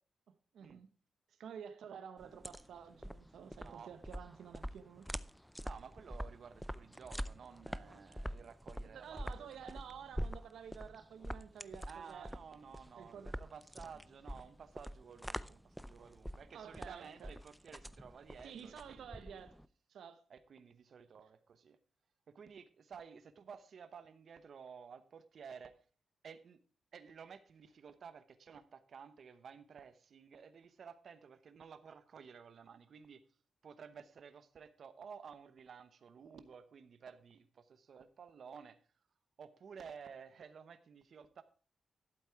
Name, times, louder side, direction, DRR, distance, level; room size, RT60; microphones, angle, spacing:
voice 1, 0.5-0.9 1.3-5.1 8.9-12.3 13.0-13.3 16.5-17.3 18.4-19.6 19.9-20.2, right 7 dB, 85° right, 0.9 m, -51 dB
sound 1, 2.2-19.7, equal, ahead, 0.5 m, -45 dB
voice 2, 3.6-3.9 5.6-9.8 11.9-19.4 20.3-21.8 22.3-25.8 26.2-26.6 26.9-33.2 33.6-38.8 39.4-41.4, right 6 dB, 60° right, 0.9 m, -54 dB
12.0 x 8.3 x 4.7 m
cardioid pair, 115°, 0 cm